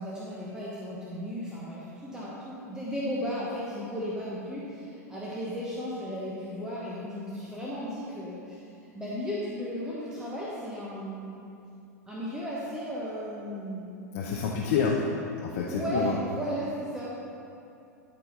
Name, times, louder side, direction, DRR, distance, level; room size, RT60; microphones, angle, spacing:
voice 1, 0.0-8.6 8.9-11.4 12.1-13.9 15.7-17.2, equal, 5° right, -7 dB, 1.3 m, -35 dB
voice 2, 14.1-15.0 15.4-16.2, left 6 dB, 50° left, -2 dB, 0.8 m, -28 dB
12.5 x 4.4 x 4.0 m, 2.6 s
figure-of-eight pair, 90°, 9 cm